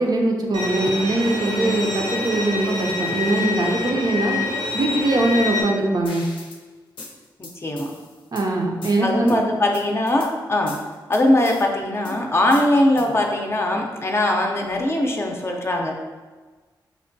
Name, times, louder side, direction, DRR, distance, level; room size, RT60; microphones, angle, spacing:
voice 1, 0.0-4.4 4.7-6.2 8.3-9.4, right 2 dB, 55° right, 0 dB, 0.5 m, -21 dB
Bowed string instrument, 0.5-5.6, left 3 dB, 85° right, 0.8 m, -27 dB
sound 1, 6.1-6.6 7.0-8.5 8.8-9.4 9.7-10.3 10.7-11.6 12.1-13.3, left 2 dB, 85° left, 0.5 m, -39 dB
voice 2, 7.4-7.9 9.0-10.8 11.1-16.0, left 1 dB, 30° left, 1 dB, 0.5 m, -21 dB
4.4 x 2.1 x 2.6 m, 1.4 s
cardioid pair, 60°, 8 cm